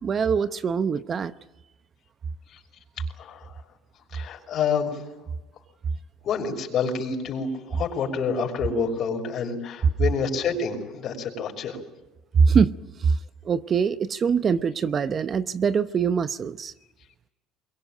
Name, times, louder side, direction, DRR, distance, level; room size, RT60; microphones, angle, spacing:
voice 1, 0.0-1.3 12.5-12.7 13.0-13.1 13.4-16.7, right 6 dB, 40° right, 0.8 m, -23 dB
voice 2, 4.1-5.0 6.2-11.8, left 5 dB, 55° left, 6.0 m, -28 dB
23.0 x 22.5 x 9.0 m
supercardioid pair, 90°, 0 cm